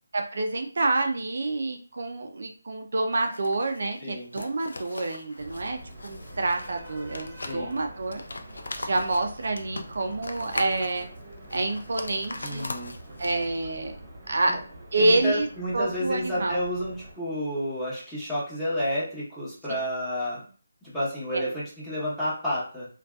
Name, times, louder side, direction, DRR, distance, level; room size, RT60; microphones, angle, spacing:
voice 1, 0.1-8.2 8.8-11.1 11.5-12.7 13.2-14.0 14.3-14.6 14.9-15.5 15.7-16.6 21.3-21.5, right 2 dB, 60° right, 4 dB, 0.4 m, -28 dB
sound 1, 3.1-13.7, left 2 dB, 85° left, 0.4 m, -40 dB
sound 2, 5.4-17.1, right 1 dB, 30° right, 0.8 m, -45 dB
voice 2, 12.4-12.9 14.5-14.6 15.0-20.4 20.8-22.9, equal, 5° left, -12 dB, 0.9 m, -30 dB
2.6 x 2.2 x 2.2 m, 0.41 s
figure-of-eight pair, 170°, 0 cm